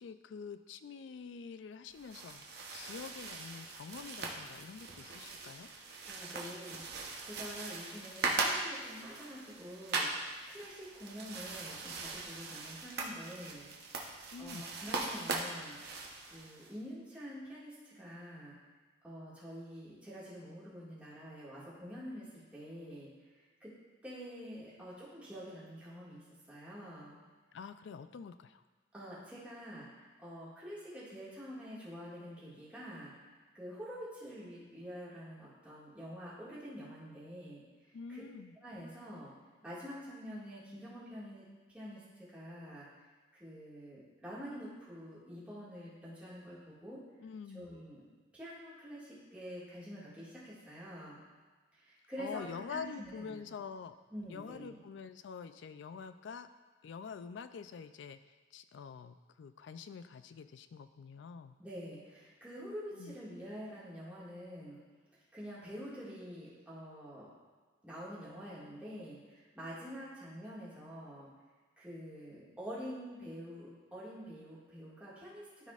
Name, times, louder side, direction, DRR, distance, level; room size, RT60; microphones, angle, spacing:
voice 1, 0.0-2.4 2.7-5.7 14.3-14.6 27.5-28.6 37.9-38.5 47.2-47.7 52.2-54.0 54.3-56.5 56.8-58.2 58.5-61.6 62.9-63.1, left 6 dB, 65° left, 11 dB, 0.3 m, -46 dB
sound 1, 1.9-16.7, right 3 dB, 55° right, 0.8 m, -40 dB
voice 2, 6.1-13.7 14.0-15.8 16.2-18.6 19.0-23.1 23.6-23.7 24.0-27.2 28.9-33.1 33.5-37.6 38.1-38.2 38.6-39.3 39.6-41.4 41.7-42.9 43.3-47.0 47.5-48.0 48.3-51.2 51.7-53.5 54.1-54.8 61.6-64.8 65.3-67.3 67.8-71.3 71.8-75.7, equal, 5° right, -10 dB, 1.9 m, -47 dB
12.5 x 4.1 x 2.4 m, 1.4 s
head